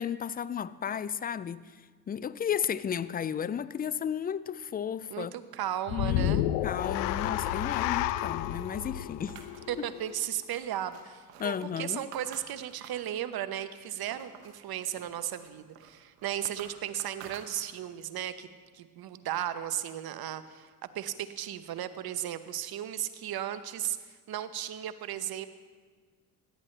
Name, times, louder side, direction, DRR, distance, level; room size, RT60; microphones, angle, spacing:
voice 1, 0.0-1.7 2.1-5.3 5.9-9.4 11.4-12.0, left 8 dB, 20° left, 0.3 m, -33 dB
voice 2, 5.1-6.5 9.7-18.5 18.7-20.7 20.9-25.5, right 11 dB, 50° right, 1.0 m, -35 dB
sound 1, 5.9-10.2, left 12 dB, 80° left, 0.6 m, -31 dB
sound 2, 9.3-13.1 13.5-14.6 15.0-18.0, right 8 dB, 85° right, 1.2 m, -51 dB
17.0 x 11.5 x 3.3 m
hypercardioid pair, 60°, 46 cm